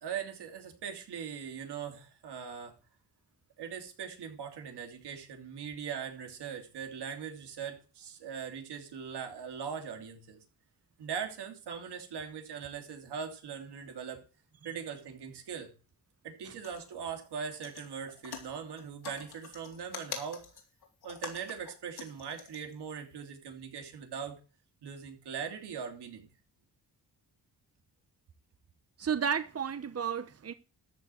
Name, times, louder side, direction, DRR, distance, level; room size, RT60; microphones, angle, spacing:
voice 1, 0.0-2.7 3.6-10.4 11.0-14.2 14.6-15.7 16.2-20.5 21.0-24.4 24.8-26.3, right 7 dB, 90° right, 2.8 m, -40 dB
sound 1, 16.6-16.9 17.2-17.4 17.6-22.7 23.1-23.2, left 6 dB, 75° left, 3.6 m, -45 dB
voice 2, 29.0-30.5, right 7 dB, 40° right, 1.0 m, -32 dB
13.5 x 4.7 x 8.3 m
cardioid pair, 70°, 39 cm